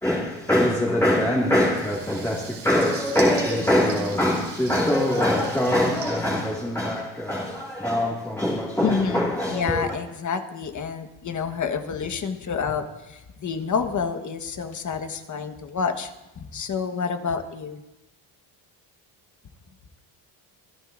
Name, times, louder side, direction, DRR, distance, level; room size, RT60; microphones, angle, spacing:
voice 1, 0.0-10.0, left 1 dB, 5° left, 2.0 m, -23 dB
Water tap faucet / Liquid, 1.7-7.2, right 6 dB, 80° right, 3.9 m, -41 dB
voice 2, 8.8-17.8, left 6 dB, 40° left, 1.4 m, -29 dB
26.5 x 11.5 x 2.6 m
cardioid pair, 115°, 46 cm